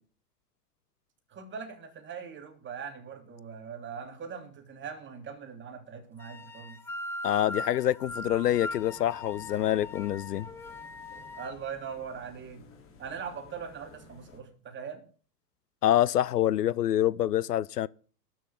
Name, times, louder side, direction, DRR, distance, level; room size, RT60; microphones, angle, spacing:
voice 1, 1.3-6.8 11.4-12.6 13.0-15.0, right 6 dB, 25° right, 3.1 m, -41 dB
sound 1, 6.2-11.5, left 2 dB, 5° left, 0.6 m, -40 dB
voice 2, 7.2-10.5 15.8-17.9, left 12 dB, 75° left, 0.6 m, -26 dB
sound 2, 8.0-14.4, left 3 dB, 25° left, 3.5 m, -54 dB
12.5 x 6.3 x 8.6 m
figure-of-eight pair, 100°, 48 cm